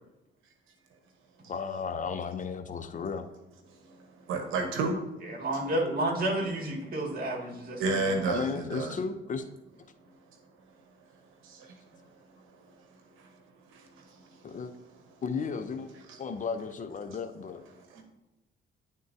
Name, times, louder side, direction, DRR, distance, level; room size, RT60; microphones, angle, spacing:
voice 1, 1.5-3.2 5.4-5.5 8.3-9.4 14.4-14.7 15.2-15.9 16.2-17.6, left 5 dB, 40° left, 8 dB, 0.6 m, -34 dB
voice 2, 3.8-5.0 7.8-9.0 11.4-11.7 13.2-13.3 13.7-14.4 16.1-16.2 17.8-18.0, right 3 dB, 85° right, 4 dB, 1.0 m, -32 dB
voice 3, 5.2-8.2, right 1 dB, 45° right, 0 dB, 2.0 m, -31 dB
10.5 x 3.7 x 2.7 m, 0.98 s
cardioid pair, 90°, 20 cm